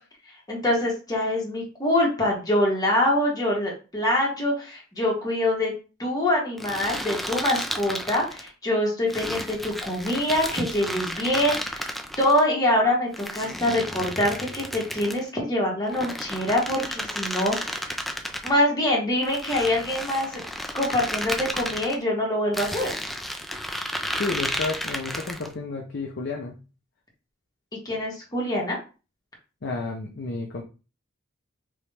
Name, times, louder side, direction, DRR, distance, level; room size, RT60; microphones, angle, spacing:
voice 1, 0.5-5.7 6.0-11.9 12.2-18.0 18.4-20.4 20.7-22.9 27.7-28.8, left 1 dB, 20° left, -3 dB, 1.4 m, -24 dB
sound 1, 6.6-8.5 9.1-12.4 13.1-15.3 15.9-18.5 19.2-21.9 22.5-25.5, equal, ahead, 0.4 m, -32 dB
voice 2, 24.2-26.6 29.6-30.6, left 3 dB, 55° left, 1 dB, 0.6 m, -31 dB
3.6 x 3.1 x 3.3 m, 0.33 s
head